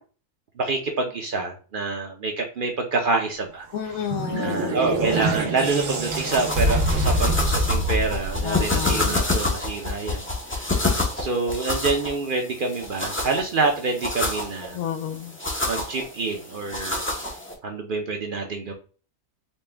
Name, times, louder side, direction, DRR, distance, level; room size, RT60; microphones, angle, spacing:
voice 1, 0.6-3.9 4.3-10.3 10.5-10.8 11.1-14.8 15.7-17.0 17.6-18.7, right 3 dB, 55° right, 3 dB, 0.6 m, -27 dB
voice 2, 3.7-4.7 8.4-9.2 14.7-15.4, left 9 dB, 85° left, 9 dB, 1.0 m, -30 dB
sound 1, 3.7-9.1, right 1 dB, 85° right, 1.3 m, -25 dB
sound 2, 5.6-17.5, left 2 dB, 15° left, 0.4 m, -28 dB
4.2 x 2.2 x 3.3 m, 0.38 s
omnidirectional pair, 1.4 m